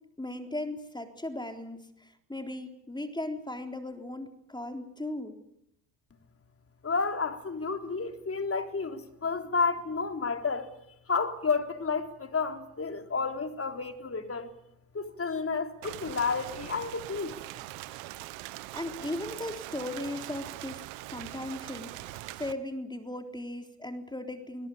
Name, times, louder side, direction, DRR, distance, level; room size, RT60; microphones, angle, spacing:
voice 1, 0.2-5.3 18.7-20.8 21.1-24.7, left 1 dB, 10° left, 3.7 m, -37 dB
voice 2, 6.8-10.7 11.1-14.5 14.9-17.3, left 4 dB, 30° left, 3.6 m, -31 dB
Rain, 15.8-22.5, right 18 dB, 70° right, 1.4 m, -42 dB
22.5 x 22.0 x 8.7 m
hypercardioid pair, 60°, 49 cm